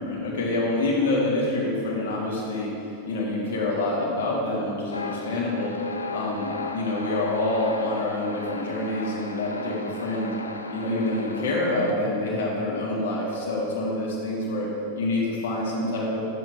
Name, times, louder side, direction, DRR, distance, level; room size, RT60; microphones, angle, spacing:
voice 1, 0.0-2.7 3.1-5.7 6.1-10.3 10.7-14.7 15.0-16.2, left 2 dB, 60° left, -3 dB, 2.1 m, -26 dB
sound 1, 4.9-11.9, left 3 dB, 80° left, 0.5 m, -36 dB
11.5 x 7.5 x 3.6 m, 2.6 s
figure-of-eight pair, 90°, 0 cm